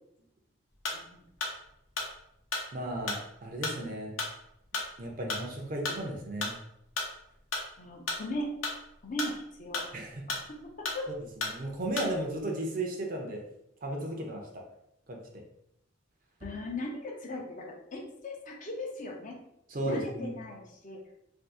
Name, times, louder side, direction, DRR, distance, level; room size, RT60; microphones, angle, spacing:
sound 1, 0.8-12.4, left 3 dB, 85° left, 0.8 m, -35 dB
voice 1, 0.9-1.2 7.8-8.5 9.0-9.8 10.5-11.1 16.4-19.4 19.8-21.1, left 1 dB, 40° left, -1 dB, 0.6 m, -38 dB
voice 2, 2.7-4.2 5.0-6.6 9.9-10.2 11.4-13.5 13.8-14.7 15.1-15.4 19.7-20.3, right 1 dB, 45° right, 0 dB, 0.6 m, -35 dB
2.6 x 2.4 x 3.6 m, 0.78 s
head